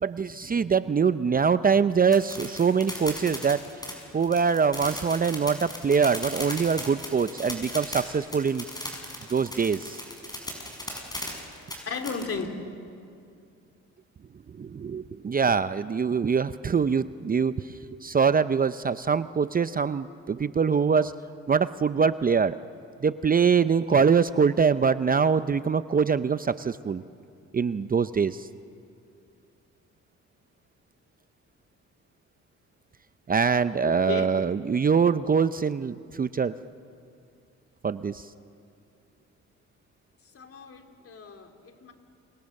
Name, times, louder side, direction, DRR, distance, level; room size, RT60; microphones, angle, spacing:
voice 1, 0.0-3.6 4.1-8.6 9.3-10.0 14.6-17.7 18.0-21.1 21.5-22.6 23.0-27.0 27.5-28.5 33.3-36.5 37.8-38.3, right 6 dB, 30° right, 13 dB, 0.6 m, -24 dB
sound 1, 2.1-12.2, left 1 dB, 15° left, 6.9 m, -37 dB
voice 2, 11.8-12.5 33.8-34.4 40.3-41.9, left 5 dB, 50° left, 4 dB, 3.2 m, -35 dB
30.0 x 27.5 x 6.6 m, 2.4 s
cardioid pair, 90°, 30 cm